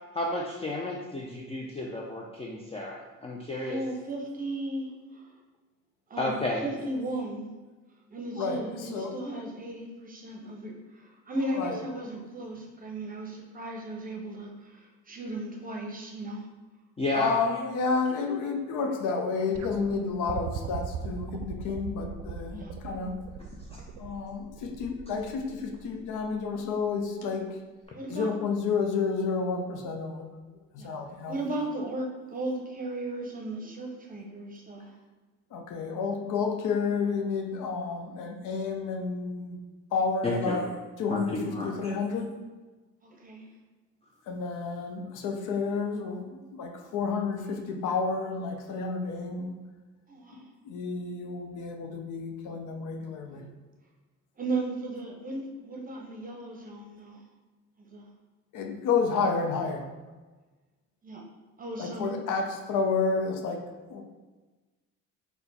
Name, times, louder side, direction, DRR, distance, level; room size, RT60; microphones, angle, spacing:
voice 1, 0.2-3.8 6.2-6.6 17.0-17.4 23.7-23.8 40.2-40.6 41.1-41.9, left 2 dB, 20° left, -1 dB, 0.4 m, -32 dB
voice 2, 3.6-5.3 6.1-6.3 6.6-7.5 8.1-16.5 17.1-17.3 22.5-22.7 23.8-24.1 27.9-28.3 30.8-30.9 31.3-34.9 43.0-43.5 50.1-50.4 53.3-53.5 54.4-57.2 57.8-58.0 59.1-59.2 61.0-61.2 61.6-62.1, right 2 dB, 25° right, 0 dB, 0.8 m, -36 dB
voice 3, 8.3-9.1 11.5-11.8 17.1-23.2 24.0-27.6 28.1-30.4 30.7-31.4 35.5-39.6 39.9-40.7 41.0-42.4 44.3-49.6 50.3-53.4 58.5-59.9 61.8-64.0, left 4 dB, 70° left, 4 dB, 0.6 m, -30 dB
sound 1, 19.6-26.7 27.8-27.9, right 8 dB, 60° right, 0.5 m, -39 dB
4.2 x 2.2 x 4.1 m, 1.3 s
supercardioid pair, 80°, 33 cm